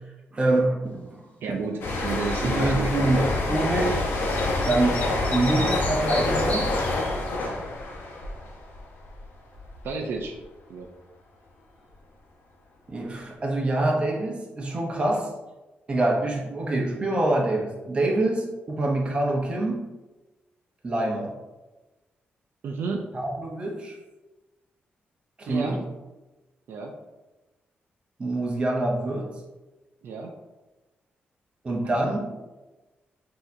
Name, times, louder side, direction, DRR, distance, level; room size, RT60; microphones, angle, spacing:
voice 1, 0.3-1.3 2.4-3.2 3.5-4.0 4.6-5.0 5.3-6.7 12.9-15.3 15.9-19.8 20.8-21.3 23.1-24.0 25.4-25.8 28.2-29.3 31.6-32.3, right 2 dB, 30° right, -1 dB, 0.7 m, -25 dB
voice 2, 1.4-3.6 9.8-10.4 10.7-10.9 22.6-23.1 25.5-25.8 26.7-26.9 30.0-30.3, right 4 dB, 70° right, 2 dB, 0.4 m, -32 dB
sound 1, 1.8-9.3 9.6-9.9, left 2 dB, 85° left, 0.8 m, -27 dB
sound 2, 4.3-7.5, left 2 dB, 40° left, 0.7 m, -34 dB
6.2 x 2.8 x 2.6 m, 1.1 s
wide cardioid pair, 155°, 4 cm